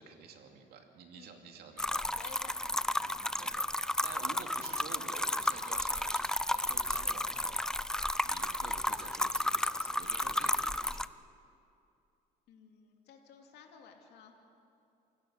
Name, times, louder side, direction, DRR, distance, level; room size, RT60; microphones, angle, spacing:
voice 1, 0.0-2.2 3.4-7.6 8.2-11.1, right 6 dB, 70° right, 4 dB, 2.5 m, -50 dB
voice 2, 1.1-1.4 2.2-3.1 12.5-14.3, left 7 dB, 75° left, 3 dB, 2.7 m, -55 dB
sound 1, 1.8-11.1, left 1 dB, 5° left, 0.4 m, -33 dB
27.5 x 16.5 x 6.5 m, 2.6 s
cardioid pair, 110°, 17 cm